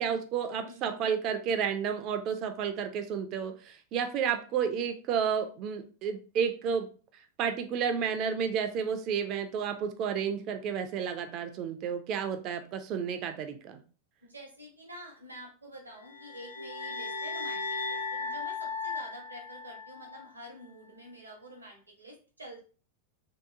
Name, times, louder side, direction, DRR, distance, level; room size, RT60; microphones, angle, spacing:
voice 1, 0.0-6.9 7.4-13.8, right 7 dB, 40° right, 8 dB, 0.3 m, -31 dB
voice 2, 0.6-1.1 14.2-22.6, equal, 80° right, 0 dB, 0.7 m, -48 dB
sound 1, 16.0-20.3, left 4 dB, 75° left, 0.3 m, -36 dB
2.8 x 2.2 x 2.4 m, 0.37 s
figure-of-eight pair, 90°, 0 cm